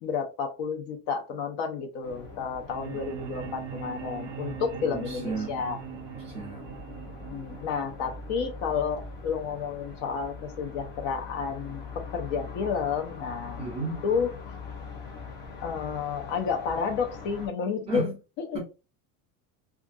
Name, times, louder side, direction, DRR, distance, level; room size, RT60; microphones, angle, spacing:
voice 1, 0.0-5.8 7.3-11.8 12.1-13.6 14.0-14.6 15.6-18.1 18.4-18.6, left 6 dB, 60° left, 0.6 m, -31 dB
sound 1, 2.0-17.5, left 4 dB, 25° left, 0.8 m, -42 dB
sound 2, 2.7-8.7, right 13 dB, 55° right, 0.4 m, -41 dB
voice 2, 4.8-5.6 6.2-6.7 13.6-14.0 17.9-18.1 18.5-18.6, right 3 dB, 15° right, 1.1 m, -34 dB
2.4 x 2.4 x 2.6 m
cardioid pair, 170°, 38 cm